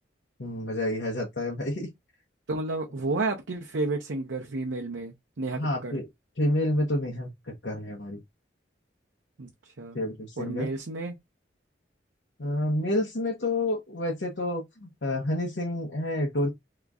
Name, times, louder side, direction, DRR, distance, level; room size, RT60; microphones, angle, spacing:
voice 1, 0.4-1.9 5.6-6.1 6.4-8.2 9.9-10.7 12.4-16.5, left 1 dB, 65° left, 0.8 m, -29 dB
voice 2, 2.5-6.0 9.4-10.0 10.4-11.2, right 3 dB, 80° right, 0.7 m, -31 dB
2.9 x 2.5 x 3.5 m
head